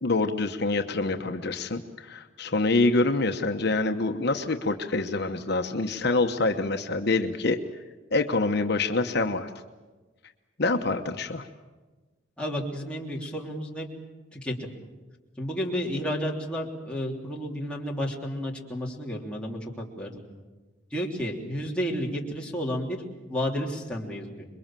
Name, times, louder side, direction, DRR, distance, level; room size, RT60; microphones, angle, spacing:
voice 1, 0.0-7.6 8.1-9.5 10.6-11.5, left 3 dB, 55° left, 5 dB, 1.1 m, -26 dB
voice 2, 12.4-13.9 14.3-14.5 15.4-20.2 20.9-23.0 23.3-24.5, equal, 5° left, -3 dB, 3.3 m, -31 dB
27.5 x 22.5 x 7.6 m, 1.2 s
head